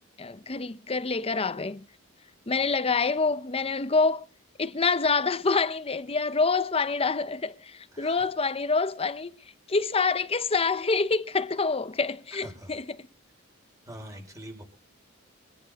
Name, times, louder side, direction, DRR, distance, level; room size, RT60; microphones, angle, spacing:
voice 1, 0.2-1.8 2.5-4.2 4.6-9.3 9.7-12.8, left 4 dB, 25° left, 0.7 m, -26 dB
voice 2, 7.9-8.3 12.4-12.7 13.9-14.6, right 1 dB, 15° right, 5.8 m, -43 dB
25.5 x 10.5 x 4.2 m
head